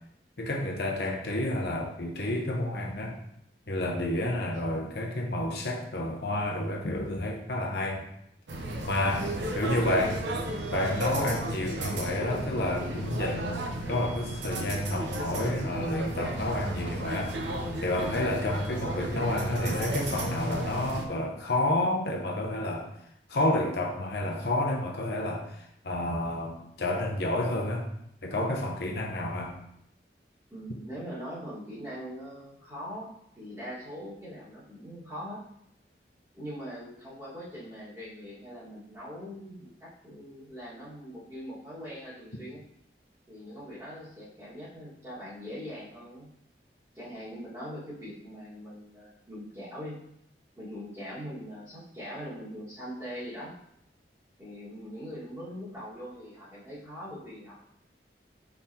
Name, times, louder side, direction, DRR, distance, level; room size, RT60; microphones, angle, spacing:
voice 1, 0.4-3.2 3.7-8.0 8.9-9.3 9.5-10.2 10.7-17.4 17.8-22.9 23.3-25.5 25.8-27.9 28.2-29.5, left 1 dB, 65° left, 0 dB, 0.7 m, -30 dB
sound 1, 8.5-21.1, right 1 dB, 85° right, 0.7 m, -34 dB
voice 2, 9.1-9.7 30.5-35.5 36.3-42.7 43.3-46.3 47.0-50.0 50.6-53.6 54.4-57.6, equal, 15° right, -9 dB, 1.7 m, -42 dB
4.8 x 3.9 x 2.8 m, 0.74 s
head